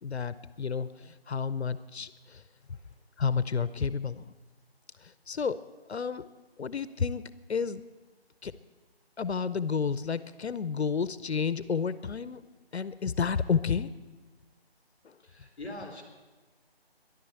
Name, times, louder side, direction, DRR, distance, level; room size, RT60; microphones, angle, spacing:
voice 1, 0.0-2.4 3.2-4.3 5.0-5.6 5.9-6.3 6.6-7.8 8.4-8.5 9.2-12.4 12.7-13.9 15.0-15.2, left 6 dB, 80° left, 15 dB, 0.7 m, -31 dB
voice 2, 2.6-3.0 15.2-16.0, left 2 dB, 5° left, -13 dB, 2.2 m, -44 dB
13.5 x 11.0 x 8.0 m, 1.3 s
figure-of-eight pair, 175°, 32 cm